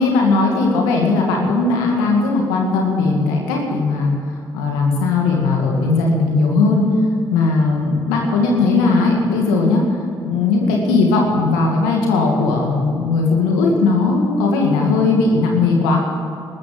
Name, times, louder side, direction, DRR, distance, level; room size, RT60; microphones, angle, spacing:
voice 1, 0.0-6.9 7.3-16.0, left 3 dB, 90° left, 0 dB, 2.1 m, -17 dB
14.0 x 13.5 x 7.7 m, 2.6 s
hypercardioid pair, 40°, 11 cm